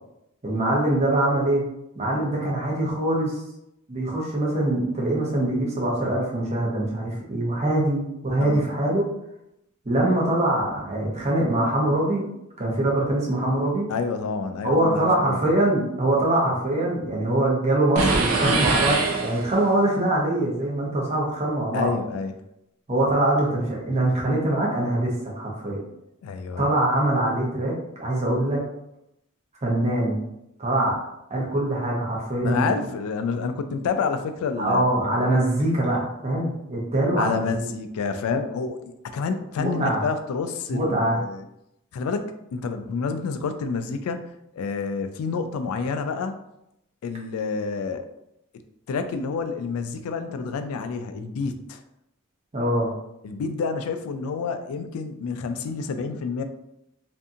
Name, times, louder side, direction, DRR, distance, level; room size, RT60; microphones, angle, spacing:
voice 1, 0.4-1.6 1.9-3.4 3.9-9.1 9.9-12.2 12.6-13.9 14.6-21.9 22.9-25.8 26.6-28.6 29.6-30.2 30.6-31.0 31.3-32.7 34.6-37.7 39.6-40.0 40.7-41.2 52.5-52.9, right 1 dB, 30° right, -3 dB, 0.7 m, -23 dB
voice 2, 13.9-15.1 15.4-15.5 21.7-22.3 26.2-26.6 32.4-35.3 37.2-38.8 39.1-41.5 41.9-46.3 47.0-48.1 48.9-51.8 53.2-56.4, left 5 dB, 85° left, 8 dB, 0.3 m, -29 dB
sound 1, 18.0-19.8, right 3 dB, 90° right, 0.5 m, -23 dB
2.6 x 2.6 x 2.4 m, 0.84 s
head